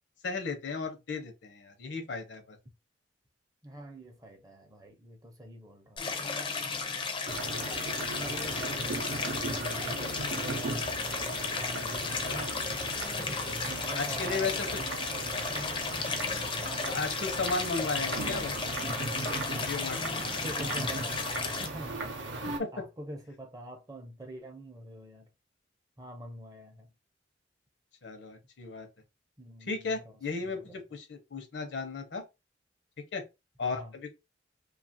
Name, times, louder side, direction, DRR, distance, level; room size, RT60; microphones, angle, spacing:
voice 1, 0.2-2.6 12.3-12.4 13.9-14.7 16.9-18.5 19.6-20.2 22.4-22.7 28.0-28.9 29.7-32.2 33.1-33.2 33.6-34.1, left 4 dB, 70° left, 0.7 m, -35 dB
voice 2, 3.6-6.5 8.1-8.9 9.6-10.9 11.3-12.6 13.3-15.8 16.6-17.0 20.2-22.2 22.7-25.3 26.0-26.9 29.4-30.8 33.6-33.9, right 1 dB, 20° right, 0.6 m, -46 dB
Stream, 6.0-21.7, left 4 dB, 30° left, 0.5 m, -34 dB
sound 1, 7.3-22.6, right 2 dB, 80° right, 0.7 m, -37 dB
2.7 x 2.4 x 2.7 m
head